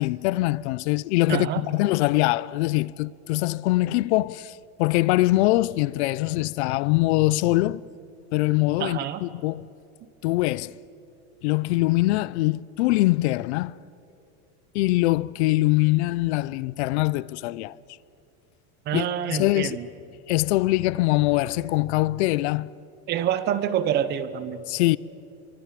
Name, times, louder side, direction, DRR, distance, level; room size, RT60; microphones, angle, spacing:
voice 1, 0.0-7.8 8.3-9.7 10.2-10.7 11.4-13.8 14.7-17.8 18.9-19.8 20.3-22.7 24.7-25.0, left 19 dB, 85° left, 0.7 m, -23 dB
voice 2, 1.3-1.6 8.8-9.2 18.9-19.9 23.1-24.6, right 10 dB, 30° right, 1.0 m, -26 dB
27.0 x 24.0 x 7.6 m
cardioid pair, 180°, 33 cm